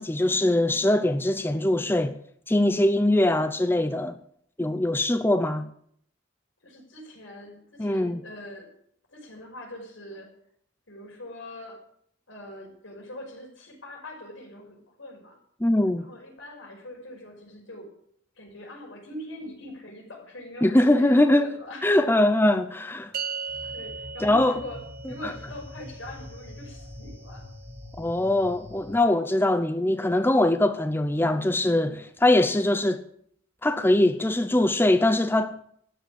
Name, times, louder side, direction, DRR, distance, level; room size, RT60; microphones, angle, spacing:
voice 1, 0.0-2.2 2.5-4.2 4.6-5.7 7.8-8.2 15.6-16.0 20.6-21.5 21.8-23.1 24.2-24.6 25.2-25.3 28.0-33.0 33.6-35.6, left 1 dB, 10° left, 0.6 m, -22 dB
voice 2, 6.6-8.7 9.1-10.3 10.9-11.8 12.3-15.4 16.0-17.9 18.4-21.9 23.7-24.8 25.0-27.5, left 1 dB, 85° left, 5.7 m, -42 dB
sound 1, 23.1-29.7, right 5 dB, 50° right, 0.9 m, -40 dB
sound 2, 23.5-29.0, equal, 10° right, 2.2 m, -44 dB
13.5 x 9.9 x 8.5 m
head